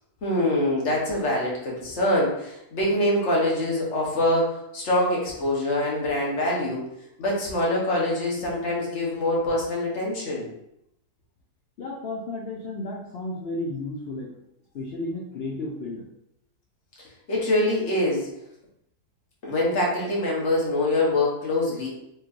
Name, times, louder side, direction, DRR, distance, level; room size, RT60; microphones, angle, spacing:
voice 1, 0.2-10.5 17.0-18.3 19.4-21.9, left 1 dB, 45° left, -3 dB, 1.3 m, -24 dB
voice 2, 11.8-14.3 14.7-16.1, left 2 dB, 80° left, -4 dB, 0.5 m, -33 dB
4.6 x 3.1 x 2.5 m, 0.78 s
omnidirectional pair, 1.8 m